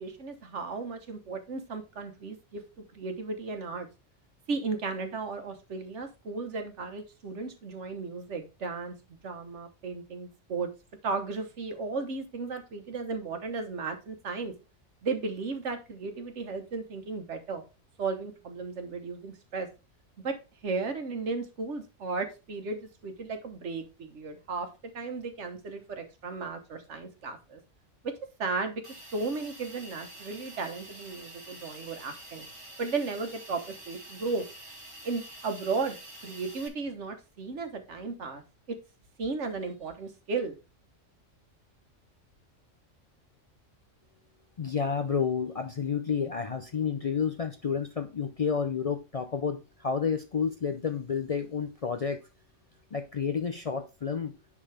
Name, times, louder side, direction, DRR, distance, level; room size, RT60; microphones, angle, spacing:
voice 1, 0.0-2.6 2.9-3.9 4.5-8.9 9.2-10.7 11.0-14.5 15.0-17.6 18.0-19.7 20.2-20.3 20.6-24.7 24.9-27.6 28.4-28.8 29.1-32.5 32.8-34.4 35.0-35.9 36.2-38.4 38.7-38.8 39.2-40.6, right 4 dB, 70° right, 7 dB, 1.4 m, -35 dB
Hiss, 28.8-36.7, right 1 dB, 25° right, 1.7 m, -47 dB
voice 2, 44.6-52.2 52.9-54.3, left 6 dB, 55° left, 7 dB, 0.4 m, -30 dB
10.0 x 3.7 x 3.3 m, 0.30 s
omnidirectional pair, 1.3 m